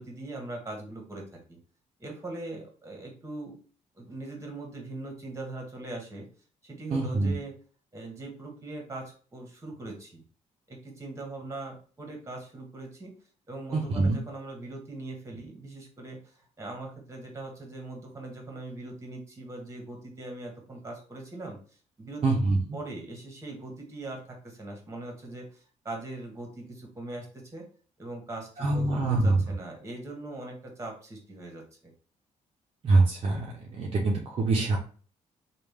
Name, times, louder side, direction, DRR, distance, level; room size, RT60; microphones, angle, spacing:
voice 1, 0.0-1.6 2.0-3.6 3.9-6.3 6.6-7.5 7.9-10.2 10.7-13.1 13.5-21.6 22.0-22.4 22.7-27.6 28.0-31.9, right 2 dB, 20° right, 1 dB, 1.4 m, -41 dB
voice 2, 6.9-7.3 13.7-14.2 22.2-22.6 28.6-29.4 32.8-34.8, right 3 dB, 45° right, -2 dB, 0.7 m, -24 dB
3.2 x 2.4 x 3.4 m, 0.41 s
cardioid pair, 95°, 13 cm